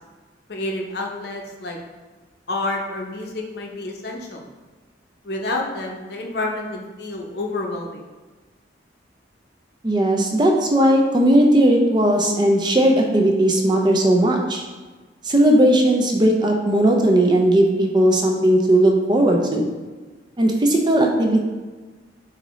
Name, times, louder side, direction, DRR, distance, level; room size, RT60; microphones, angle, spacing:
voice 1, 0.5-1.8 2.5-4.4 5.2-8.1, left 2 dB, 60° left, 0 dB, 0.6 m, -29 dB
voice 2, 9.8-14.6 15.2-19.7 20.4-21.4, right 1 dB, 25° right, 2 dB, 0.4 m, -17 dB
6.6 x 2.7 x 3.1 m, 1.3 s
head